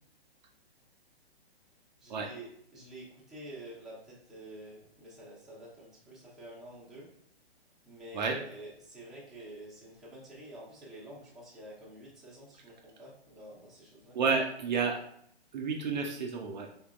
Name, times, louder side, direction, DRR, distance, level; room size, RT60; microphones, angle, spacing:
voice 1, 2.0-7.1 7.8-14.2, right 1 dB, ahead, -8 dB, 0.8 m, -48 dB
voice 2, 14.1-15.0 15.5-16.7, right 5 dB, 45° right, 2 dB, 0.5 m, -30 dB
3.9 x 3.5 x 2.4 m, 0.70 s
hypercardioid pair, 135°, 32 cm